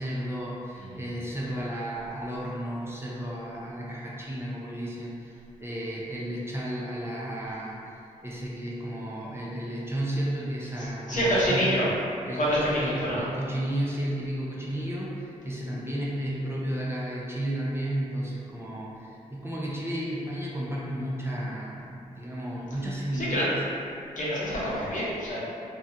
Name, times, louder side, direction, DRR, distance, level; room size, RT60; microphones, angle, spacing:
voice 1, 0.0-11.7 12.3-23.6, right 1 dB, 15° right, -6 dB, 0.5 m, -33 dB
voice 2, 11.1-11.9 12.4-13.2 23.1-23.4 24.2-25.4, equal, 60° left, -8 dB, 0.9 m, -26 dB
2.3 x 2.2 x 2.7 m, 2.6 s
supercardioid pair, 40°, 15 cm